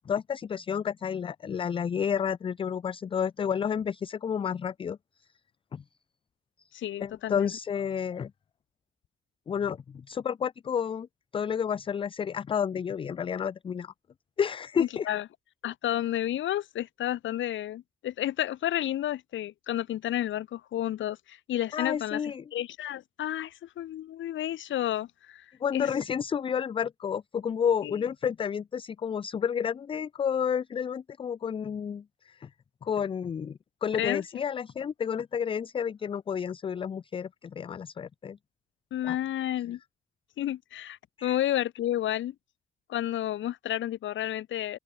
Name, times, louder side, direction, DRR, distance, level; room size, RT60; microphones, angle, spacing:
voice 1, 0.1-5.0 5.7-5.8 7.0-8.3 9.5-11.1 11.3-13.9 14.4-15.1 21.7-22.4 25.6-32.5 32.8-38.4 39.0-39.2 41.2-41.4, left 7 dB, 25° left, 0.3 m, -30 dB
voice 2, 6.7-7.5 14.8-15.2 15.6-25.5 25.7-25.9 27.8-27.9 34.0-34.2 38.9-39.8 40.4-42.3 42.9-44.8, left 12 dB, 75° left, 2.0 m, -31 dB
open air
cardioid pair, 90°, 20 cm